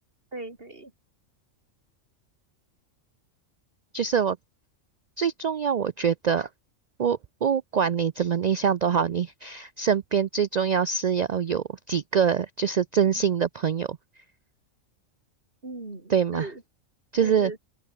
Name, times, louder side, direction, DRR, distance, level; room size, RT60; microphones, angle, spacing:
voice 1, 0.3-0.9 15.6-16.6 17.2-17.6, right 2 dB, 45° right, 3.3 m, -38 dB
voice 2, 3.9-4.4 5.2-6.5 7.0-14.0 16.1-16.5 17.1-17.6, right 7 dB, 85° right, 0.3 m, -24 dB
open air
omnidirectional pair, 1.3 m